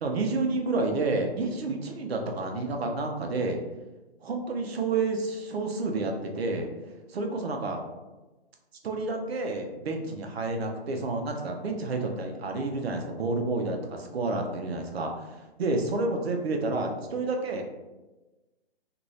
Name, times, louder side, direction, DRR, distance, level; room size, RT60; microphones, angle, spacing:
voice 1, 0.0-3.6 4.2-6.7 7.1-7.8 8.8-17.6, right 3 dB, 70° right, 3 dB, 0.7 m, -30 dB
2.7 x 2.6 x 3.1 m, 1.1 s
hypercardioid pair, 170°, 33 cm